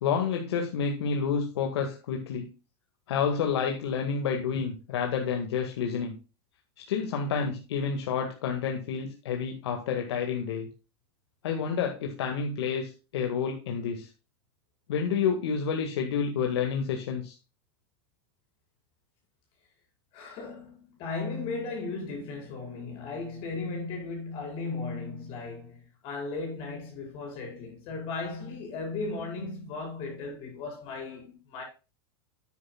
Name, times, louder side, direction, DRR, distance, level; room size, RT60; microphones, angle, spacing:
voice 1, 0.0-2.5 3.1-6.1 6.9-10.7 11.4-14.1 14.9-17.3, left 6 dB, 80° left, 1.8 m, -29 dB
voice 2, 20.1-31.6, left 3 dB, 40° left, 5.3 m, -36 dB
10.5 x 9.4 x 2.3 m
supercardioid pair, 145°, 14 cm